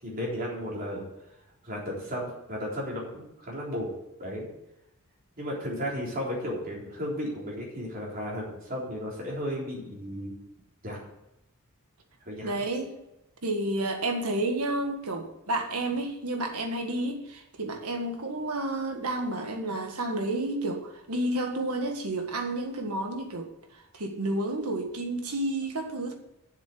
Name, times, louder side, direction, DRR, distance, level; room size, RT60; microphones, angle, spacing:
voice 1, 0.0-1.0 1.6-3.9 4.2-4.5 5.4-10.3 10.8-11.0 12.2-12.5, equal, 40° right, -3 dB, 3.7 m, -34 dB
voice 2, 12.4-12.9 13.4-23.5 23.9-26.1, right 1 dB, 90° right, 5 dB, 1.7 m, -30 dB
7.6 x 7.5 x 7.7 m, 0.90 s
head